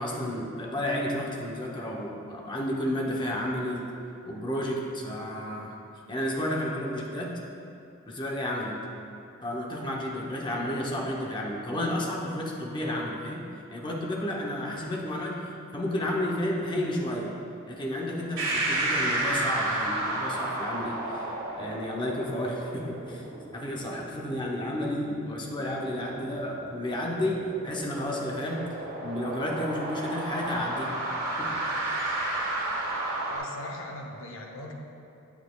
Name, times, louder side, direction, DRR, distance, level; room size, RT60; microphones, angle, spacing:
voice 1, 0.0-3.9 4.2-5.8 6.1-7.3 8.1-8.8 9.4-13.4 13.7-15.4 15.7-17.3 17.7-21.3 21.6-23.2 23.5-28.7 29.0-30.9 31.4-31.5, left 1 dB, 20° left, -2 dB, 0.7 m, -31 dB
sound 1, 18.4-33.4, right 2 dB, 85° right, 1.6 m, -32 dB
voice 2, 33.3-34.7, left 1 dB, 70° left, 2 dB, 0.7 m, -40 dB
8.2 x 7.1 x 2.3 m, 2.7 s
head